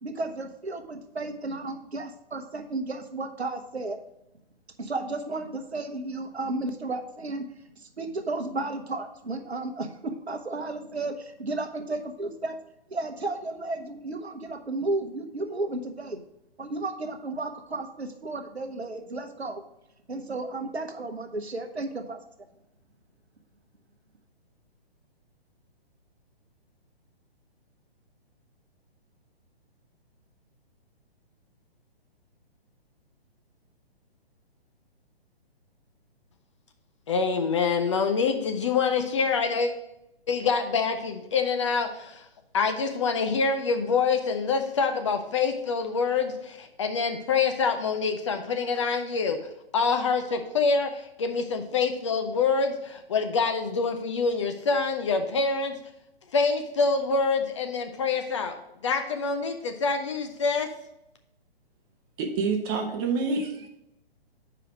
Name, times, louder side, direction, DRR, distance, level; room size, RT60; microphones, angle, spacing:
voice 1, 0.0-4.0 4.8-7.4 7.8-12.6 12.9-16.2 16.6-19.6 20.1-22.2, right 2 dB, 90° right, 6 dB, 0.9 m, -33 dB
voice 2, 37.1-39.7 40.3-42.2 42.5-49.4 49.7-55.7 56.3-58.6 58.8-60.7, left 4 dB, 30° left, 6 dB, 0.5 m, -26 dB
voice 3, 62.2-63.7, right 4 dB, 25° right, 4 dB, 0.8 m, -27 dB
4.9 x 4.8 x 6.1 m, 0.84 s
figure-of-eight pair, 130°, 31 cm